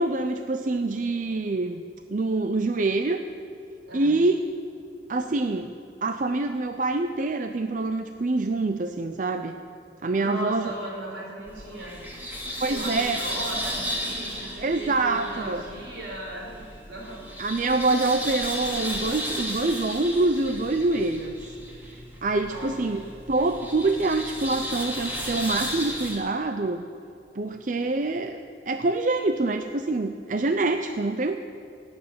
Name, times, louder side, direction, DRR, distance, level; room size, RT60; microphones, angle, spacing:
voice 1, 0.0-1.8 2.1-3.2 3.9-4.4 5.1-5.7 6.0-9.6 10.0-10.7 12.6-13.2 14.6-15.6 17.4-21.4 21.9-23.0 23.3-26.8 27.3-28.4 28.7-31.4, right 2 dB, 45° right, 7 dB, 0.5 m, -25 dB
voice 2, 3.9-4.2 10.2-12.0 12.7-17.3 22.4-22.7, right 1 dB, 80° right, -2 dB, 5.0 m, -37 dB
sound 1, 11.5-26.2, equal, 10° right, 2.8 m, -34 dB
17.0 x 7.9 x 9.4 m, 2.6 s
head